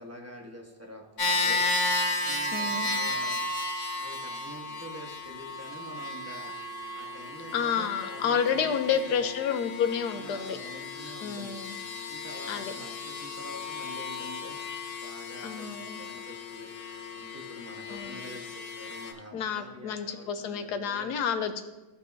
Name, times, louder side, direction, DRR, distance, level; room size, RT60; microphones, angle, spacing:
voice 1, 0.0-1.6 2.2-3.6 3.9-6.5 6.9-9.3 10.1-11.6 12.1-14.7 15.0-16.7 17.1-21.1, equal, 10° right, 0 dB, 1.0 m, -46 dB
sound 1, 1.2-19.1, left 2 dB, 50° left, 1.5 m, -34 dB
voice 2, 2.5-2.9 7.5-10.6 11.2-11.7 12.5-12.7 15.4-16.0 17.9-18.2 19.3-21.6, left 7 dB, 80° left, 8 dB, 1.3 m, -30 dB
16.0 x 5.5 x 2.6 m, 1.1 s
omnidirectional pair, 1.7 m